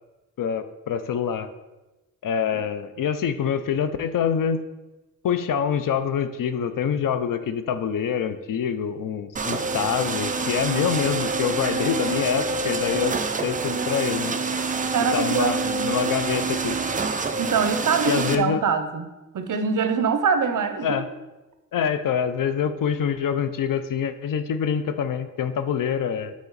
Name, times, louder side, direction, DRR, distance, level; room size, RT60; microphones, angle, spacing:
voice 1, 0.4-1.5 2.2-4.6 5.2-13.2 13.4-14.3 15.1-16.8 18.0-18.6 20.8-21.1 21.7-26.3, left 7 dB, 85° left, 11 dB, 0.6 m, -25 dB
sound 1, 9.4-18.4, right 3 dB, 25° right, 0.4 m, -27 dB
voice 2, 14.9-15.9 17.4-19.0 19.3-21.0, right 5 dB, 70° right, 9 dB, 0.7 m, -24 dB
8.4 x 4.3 x 3.9 m, 1.1 s
wide cardioid pair, 145°, 32 cm